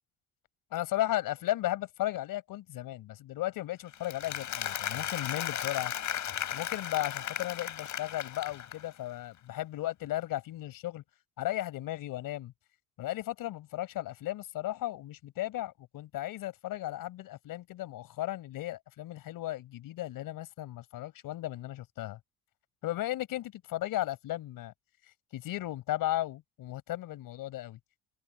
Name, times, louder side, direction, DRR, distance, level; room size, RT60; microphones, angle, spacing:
voice 1, 0.7-5.9 6.5-11.0 11.4-12.5 13.0-22.2 22.8-24.7 25.3-27.8, left 15 dB, 75° left, 5.0 m, -35 dB
Applause, 3.9-9.0, left 11 dB, 55° left, 5.9 m, -36 dB
cardioid pair, 115°, 34 cm